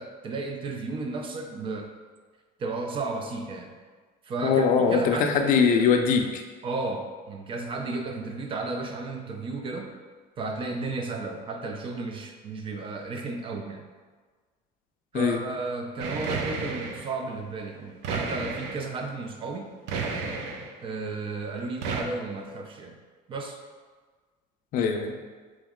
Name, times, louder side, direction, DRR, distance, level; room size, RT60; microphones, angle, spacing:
voice 1, 0.0-1.9 2.6-3.8 4.2-5.7 6.6-9.9 10.4-13.8 15.1-19.7 20.8-23.0 23.3-23.6, right 3 dB, 30° right, 3 dB, 0.3 m, -33 dB
voice 2, 4.4-6.4 15.1-15.4 24.7-25.1, left 6 dB, 50° left, 4 dB, 0.4 m, -22 dB
sound 1, 16.0-17.1 18.0-18.9 19.9-20.7 21.8-22.0, right 4 dB, 80° right, 0.5 m, -31 dB
3.6 x 3.0 x 3.6 m, 1.4 s
cardioid pair, 160°, 18 cm